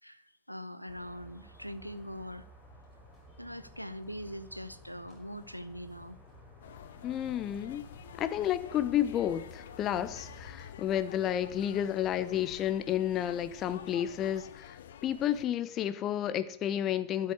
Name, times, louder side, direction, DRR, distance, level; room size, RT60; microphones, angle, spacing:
voice 1, 0.0-2.5 3.4-6.2, equal, 90° right, 14 dB, 0.8 m, -42 dB
sound 1, 0.9-10.7, equal, 15° left, 5.2 m, -55 dB
sound 2, 6.6-15.5, left 9 dB, 60° left, 0.9 m, -49 dB
voice 2, 7.0-7.8 8.2-14.8 15.0-17.3, left 11 dB, 30° left, 13 dB, 1.0 m, -31 dB
12.5 x 7.6 x 9.7 m, 0.74 s
figure-of-eight pair, 90°, 0 cm